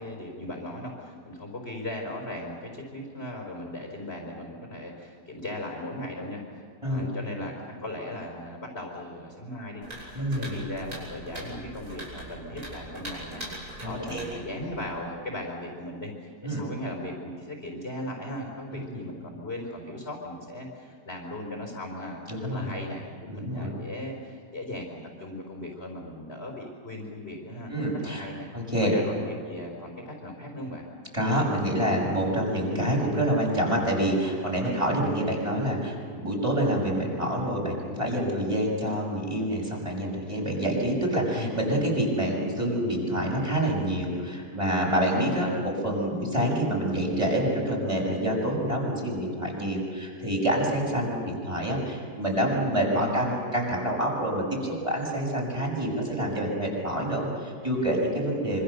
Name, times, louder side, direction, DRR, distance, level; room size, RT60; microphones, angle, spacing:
voice 1, 0.0-7.5 7.8-27.7 28.0-28.5 28.8-30.8 34.6-34.8 41.3-41.5 45.1-45.6 52.9-53.3, left 1 dB, 35° left, -1 dB, 4.8 m, -38 dB
sound 1, 9.8-15.0, right 1 dB, 60° right, 7.4 m, -41 dB
voice 2, 10.1-10.6 13.8-14.4 16.4-16.6 18.7-19.0 22.3-22.7 23.3-23.7 27.7-28.3 28.5-28.9 31.1-58.6, right 1 dB, 15° right, -3 dB, 6.5 m, -27 dB
26.5 x 26.0 x 6.8 m, 2.2 s
omnidirectional pair, 1.8 m